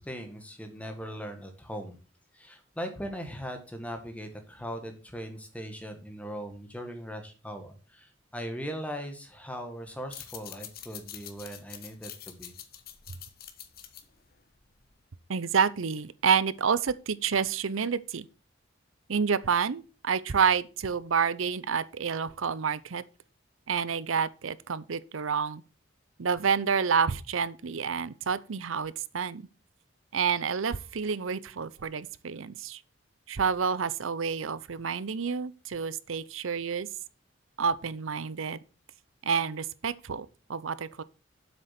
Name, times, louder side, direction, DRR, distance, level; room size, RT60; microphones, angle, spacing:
voice 1, 0.0-2.0 2.3-12.5, equal, 5° left, 1.7 m, -39 dB
sound 1, 10.0-15.1, left 10 dB, 50° left, 1.2 m, -46 dB
voice 2, 15.3-18.3 19.1-23.0 23.7-25.6 26.2-29.5 30.1-32.8 33.3-36.9 37.6-38.6 39.2-41.0, right 6 dB, 85° right, 0.7 m, -29 dB
7.9 x 6.6 x 5.8 m
head